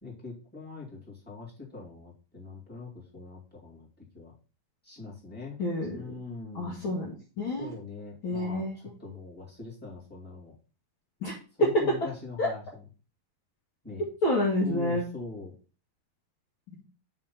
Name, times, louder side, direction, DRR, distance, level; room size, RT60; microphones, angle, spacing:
voice 1, 0.0-3.9 4.1-4.3 4.8-5.6 5.9-6.8 7.6-8.6 9.0-10.5 11.6-12.6 13.8-14.0 14.6-15.5, left 4 dB, 5° left, -6 dB, 2.5 m, -42 dB
voice 2, 5.6-6.1 6.5-7.7 8.2-8.7 11.2-11.3 12.4-12.5 14.2-15.0, left 1 dB, 65° left, -3 dB, 1.2 m, -29 dB
5.7 x 4.8 x 5.9 m, 0.36 s
omnidirectional pair, 4.6 m